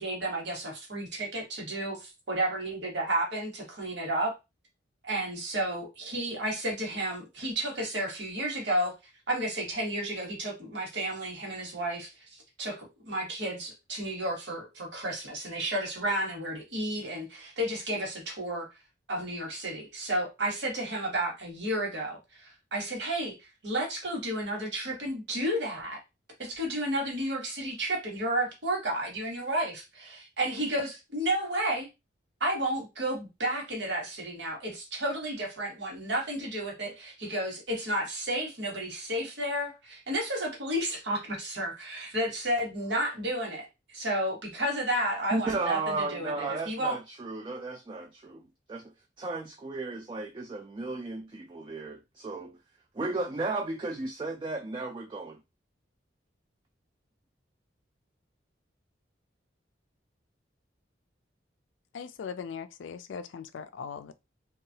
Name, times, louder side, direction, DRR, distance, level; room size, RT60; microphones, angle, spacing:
voice 1, 0.0-4.3 5.0-8.9 9.3-12.2 12.6-18.7 19.1-26.0 26.4-31.9 32.4-47.0, right 1 dB, 70° right, 1.1 m, -32 dB
voice 2, 45.3-48.9 49.2-52.6 52.9-55.4, right 3 dB, 25° right, 0.3 m, -34 dB
voice 3, 61.9-64.1, left 6 dB, 90° left, 0.4 m, -39 dB
2.8 x 2.3 x 2.7 m
head